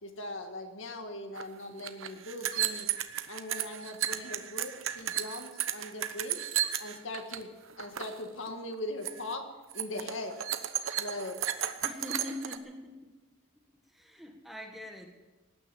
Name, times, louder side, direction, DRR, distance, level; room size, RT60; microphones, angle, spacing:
voice 1, 0.0-2.9 3.3-6.5 6.8-7.5 7.8-9.5 9.7-10.3 11.0-11.4, left 1 dB, 65° left, 5 dB, 1.9 m, -40 dB
sound 1, 1.4-1.5 1.7-7.4 7.7-8.2 8.5-8.7 9.0-9.3 9.7-12.6, right 10 dB, 70° right, 1.0 m, -34 dB
voice 2, 11.8-13.1 13.9-15.1, left 1 dB, ahead, 3 dB, 1.5 m, -42 dB
18.5 x 9.9 x 7.1 m, 1.2 s
head